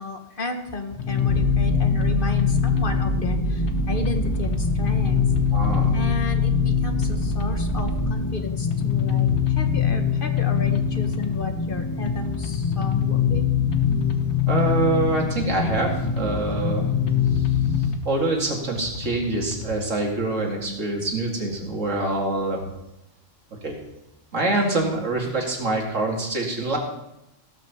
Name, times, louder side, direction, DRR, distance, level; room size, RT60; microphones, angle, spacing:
voice 1, 0.0-5.2 5.9-13.5, left 3 dB, 45° left, 5 dB, 1.4 m, -33 dB
sound 1, 0.9-1.4 2.0-3.0 3.7-4.7 5.4-6.4 7.0-8.1 8.7-9.7 10.4-11.4 12.1-13.1 13.7-14.8 15.4-16.4 17.1-18.1 18.7-19.8, left 4 dB, 65° left, 1.3 m, -36 dB
sound 2, 1.0-18.0, left 8 dB, 20° left, 0.6 m, -24 dB
sound 3, 1.3-8.1, right 3 dB, 30° right, 0.8 m, -27 dB
voice 2, 5.5-6.0 14.5-16.9 17.3-17.4 18.1-22.6 23.6-23.7 24.3-26.8, right 2 dB, 85° right, 0 dB, 2.7 m, -25 dB
16.0 x 6.1 x 7.0 m, 0.88 s
omnidirectional pair, 1.3 m